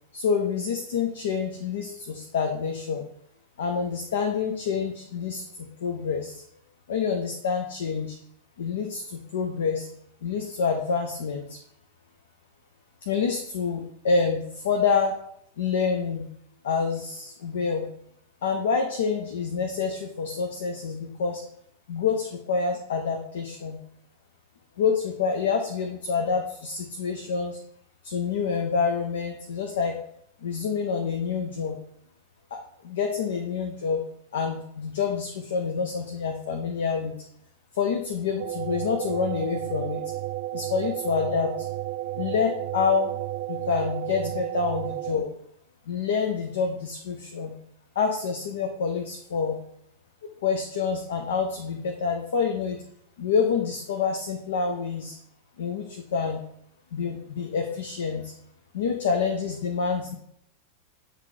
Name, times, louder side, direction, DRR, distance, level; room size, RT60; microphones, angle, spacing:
voice 1, 0.1-3.0 3.6-6.4 6.9-8.2 8.6-9.9 10.2-11.6 13.0-15.2 15.6-16.3 16.6-17.9 18.4-21.4 21.9-23.8 24.8-27.6 28.0-30.0 30.4-31.8 32.5-34.0 34.3-37.1 37.7-40.1 40.5-41.5 42.1-43.1 43.5-45.3 45.9-47.6 48.0-49.6 50.4-52.8 53.2-55.2 55.6-56.4 56.9-58.3 58.7-60.2, left 5 dB, 60° left, 4 dB, 0.7 m, -27 dB
sound 1, 38.4-45.1, right 14 dB, 50° right, 0.5 m, -32 dB
7.4 x 3.4 x 3.7 m, 0.68 s
figure-of-eight pair, 90°, 0 cm